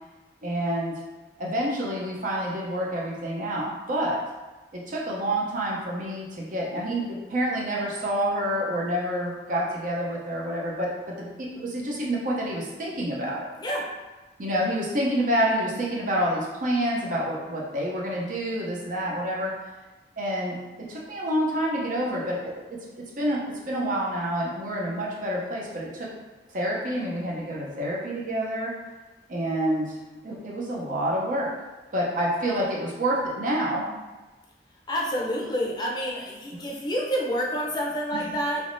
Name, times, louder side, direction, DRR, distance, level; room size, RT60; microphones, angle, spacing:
voice 1, 0.4-1.0 1.4-4.2 4.7-13.5 14.4-19.5 20.2-26.1 26.5-28.8 29.3-30.0 30.2-31.5 31.9-33.9 38.1-38.3, right 1 dB, 50° right, -3 dB, 0.6 m, -28 dB
voice 2, 34.9-38.6, equal, 25° left, -3 dB, 0.6 m, -28 dB
3.4 x 3.0 x 2.6 m, 1.2 s
head